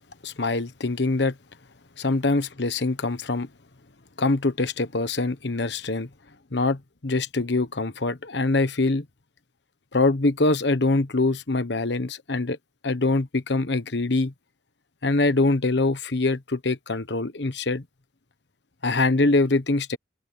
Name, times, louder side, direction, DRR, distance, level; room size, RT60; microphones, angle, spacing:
voice 1, 0.2-1.3 2.0-3.5 4.2-6.1 6.5-9.0 9.9-12.6 12.8-14.3 15.0-17.8 18.8-20.0, left 2 dB, 70° left, 1.2 m, -24 dB
head